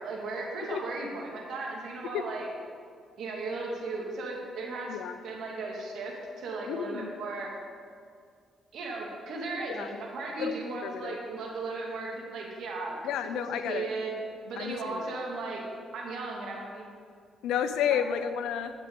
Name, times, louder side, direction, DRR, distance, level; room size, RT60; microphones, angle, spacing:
voice 1, 0.0-2.5 3.2-7.5 8.7-14.1 14.5-15.6 15.9-16.9 17.9-18.0, right 3 dB, 70° right, -2 dB, 2.1 m, -36 dB
voice 2, 6.7-7.1 9.7-9.9 10.4-10.6 10.8-11.2 13.0-13.9 14.6-15.0 17.4-18.7, left 8 dB, 85° left, 10 dB, 0.6 m, -31 dB
10.5 x 7.6 x 3.8 m, 2.2 s
cardioid pair, 90°, 0 cm